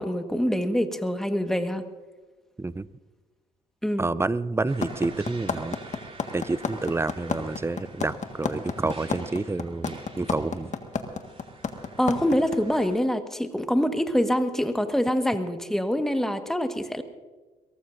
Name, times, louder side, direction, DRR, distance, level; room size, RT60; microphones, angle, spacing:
voice 1, 0.0-1.8 3.8-4.1 12.0-17.0, equal, ahead, 7 dB, 1.5 m, -25 dB
voice 2, 4.0-5.8 6.3-10.7, right 3 dB, 15° right, 18 dB, 0.6 m, -29 dB
sound 1, 4.7-13.0, right 3 dB, 30° right, 3.3 m, -49 dB
sound 2, 4.8-12.6, left 5 dB, 40° left, 1.7 m, -29 dB
22.5 x 18.5 x 2.7 m, 1.3 s
hypercardioid pair, 50°, 19 cm